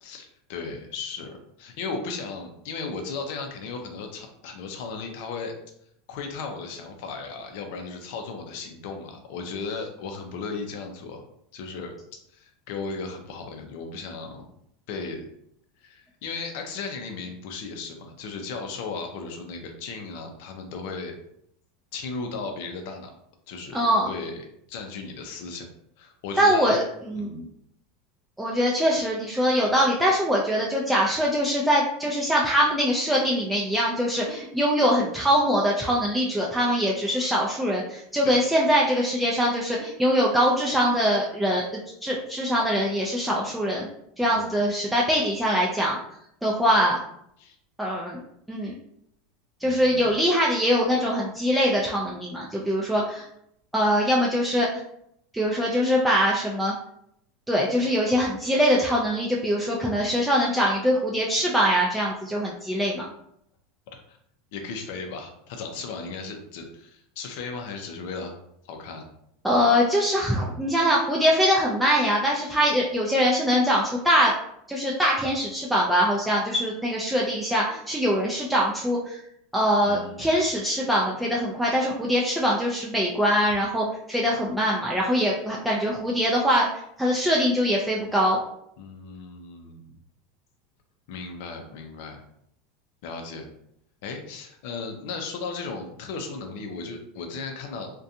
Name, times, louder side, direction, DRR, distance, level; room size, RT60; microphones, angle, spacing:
voice 1, 0.0-5.5 6.1-11.3 11.5-11.9 12.3-14.4 14.9-15.3 15.8-21.1 21.9-23.1 23.5-25.7 26.0-26.8 27.1-27.4 38.2-38.3 39.0-39.4 44.2-44.6 47.4-47.6 49.6-50.1 64.1-64.2 64.5-68.4 68.7-69.1 79.8-80.3 88.8-89.9 91.1-92.2 93.0-93.5 94.0-97.9, left 4 dB, 65° left, 4 dB, 0.5 m, -36 dB
voice 2, 23.7-24.1 26.4-27.4 28.4-43.9 44.2-46.0 46.4-47.0 47.8-48.2 48.5-48.7 49.6-53.2 53.7-54.8 55.3-56.7 57.5-63.0 69.4-74.3 74.7-79.2 79.5-86.7 87.0-88.4, equal, 5° right, -3 dB, 0.4 m, -23 dB
2.4 x 2.2 x 2.7 m, 0.73 s
supercardioid pair, 120°, 0 cm